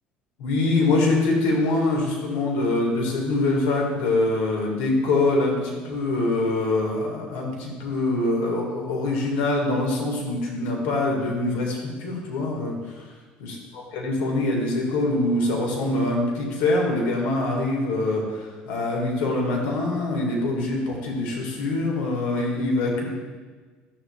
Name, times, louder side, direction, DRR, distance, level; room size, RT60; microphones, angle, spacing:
voice 1, 0.4-13.0 13.4-13.6 13.9-23.1, left 2 dB, 80° left, -1 dB, 2.0 m, -24 dB
12.5 x 6.9 x 2.4 m, 1.4 s
supercardioid pair, 80°, 4 cm